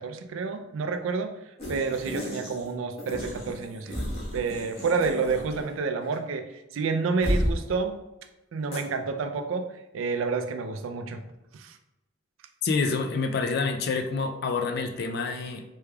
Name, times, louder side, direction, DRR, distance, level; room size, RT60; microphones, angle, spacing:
voice 1, 0.0-1.4 1.7-4.0 4.3-8.0 8.5-11.2 11.5-11.8, right 4 dB, 85° right, 7 dB, 0.4 m, -29 dB
sound 1, 1.6-2.7 3.0-5.8 6.0-6.2 7.2-7.6 8.7-8.8, equal, 30° left, 1.1 m, -32 dB
voice 2, 12.6-15.6, left 4 dB, 55° left, 5 dB, 0.4 m, -27 dB
3.4 x 3.2 x 2.2 m, 0.96 s
head